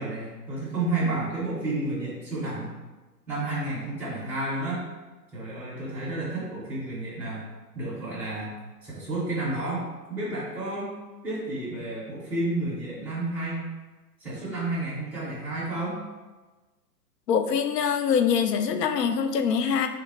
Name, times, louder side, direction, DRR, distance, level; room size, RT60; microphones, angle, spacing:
voice 1, 0.0-2.7 3.3-4.8 5.3-7.4 7.7-8.5 8.8-10.9 11.2-13.6 14.2-16.0, right 2 dB, 5° right, -8 dB, 0.5 m, -31 dB
voice 2, 17.3-19.9, left 7 dB, 80° left, 7 dB, 0.6 m, -24 dB
3.4 x 2.8 x 4.0 m, 1.2 s
hypercardioid pair, 125°, 48 cm